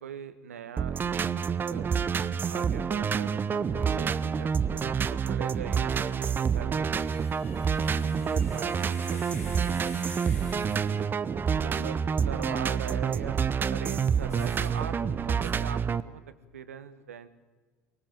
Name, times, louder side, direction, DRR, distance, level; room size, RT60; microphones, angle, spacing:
voice 1, 0.0-1.9 2.5-7.2 8.2-10.3 10.7-11.0 11.6-13.4 13.7-17.3, right 8 dB, 75° right, 12 dB, 1.4 m, -42 dB
sound 1, 0.8-16.0, right 6 dB, 25° right, 0.8 m, -28 dB
sound 2, 5.9-6.2 6.9-11.1 14.3-14.7 15.4-15.5, left 1 dB, 90° left, 5.2 m, -47 dB
24.0 x 20.5 x 7.6 m, 1.4 s
figure-of-eight pair, 70°, 8 cm